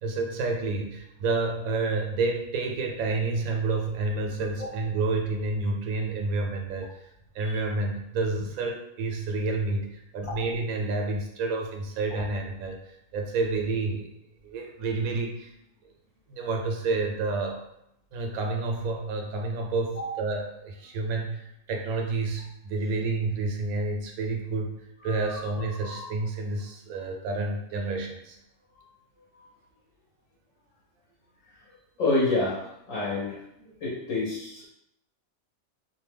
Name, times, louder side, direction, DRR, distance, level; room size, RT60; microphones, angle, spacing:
voice 1, 0.0-7.1 7.3-14.1 14.4-15.5 16.3-17.7 18.1-28.4 33.6-33.7, right 3 dB, 85° right, 2 dB, 1.0 m, -29 dB
voice 2, 32.0-32.6 32.9-33.4 33.8-34.7, left 2 dB, 70° left, -7 dB, 1.1 m, -27 dB
2.6 x 2.1 x 3.3 m, 0.80 s
omnidirectional pair, 1.4 m